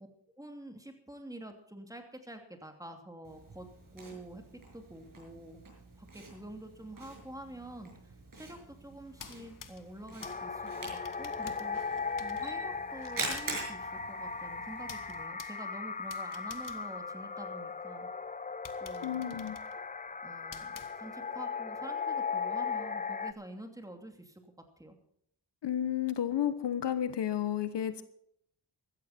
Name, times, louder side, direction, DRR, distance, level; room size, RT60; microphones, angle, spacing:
voice 1, 0.4-3.7 3.9-4.4 4.7-5.6 6.0-11.8 12.2-18.1 18.8-19.4 19.7-19.8 20.2-25.0, right 1 dB, 10° right, 4 dB, 2.7 m, -47 dB
Camera, 3.2-15.2, right 3 dB, 50° right, 6.8 m, -45 dB
sound 1, 9.1-17.8 18.2-18.3 18.6-21.4, left 6 dB, 50° left, 1.3 m, -52 dB
sound 2, 10.2-23.3, left 5 dB, 20° left, 0.7 m, -38 dB
voice 2, 19.0-19.6 25.6-28.0, left 10 dB, 70° left, 12 dB, 1.2 m, -32 dB
15.5 x 14.0 x 4.4 m, 0.71 s
cardioid pair, 90°, 42 cm